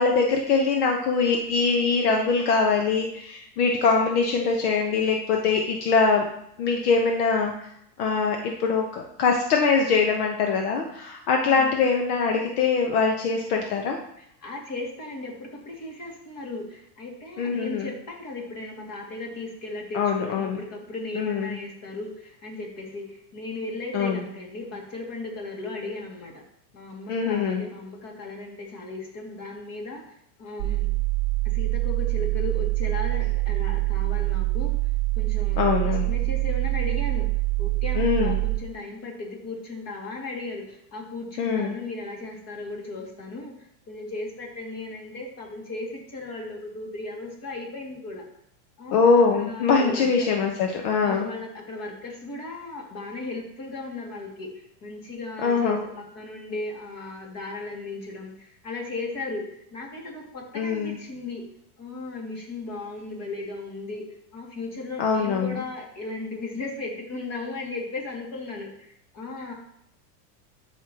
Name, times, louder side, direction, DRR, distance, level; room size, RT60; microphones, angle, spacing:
voice 1, 0.0-6.3 6.6-7.5 8.0-14.0 17.4-17.9 19.9-20.6 21.1-21.6 23.9-24.2 27.1-27.6 35.6-36.1 38.0-38.4 41.4-41.7 48.9-51.3 55.4-55.8 60.5-60.9 65.0-65.5, left 5 dB, 65° left, 2 dB, 1.2 m, -23 dB
voice 2, 11.4-11.8 14.2-26.4 26.7-30.9 31.4-34.8 35.2-37.3 37.6-48.2 48.8-50.3 51.0-61.4 61.8-64.1 64.3-69.5, left 2 dB, 30° left, 0 dB, 2.4 m, -36 dB
sound 1, 30.6-38.6, right 24 dB, 55° right, 1.0 m, -25 dB
12.5 x 5.6 x 3.0 m, 0.73 s
supercardioid pair, 135°, 50 cm